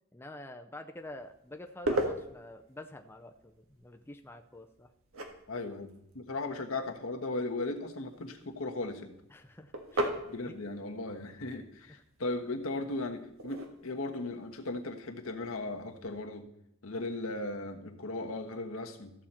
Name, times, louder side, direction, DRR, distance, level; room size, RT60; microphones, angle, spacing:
voice 1, 0.1-4.9 9.3-10.2 10.4-10.5 11.5-11.6 11.9-12.0, left 1 dB, 10° left, 5 dB, 0.5 m, -48 dB
sound 1, 1.0-16.1, right 1 dB, 85° right, 1.5 m, -41 dB
voice 2, 5.5-9.2 10.3-16.5 16.8-19.1, left 2 dB, 80° left, 4 dB, 1.3 m, -37 dB
14.0 x 7.4 x 4.3 m, 0.77 s
head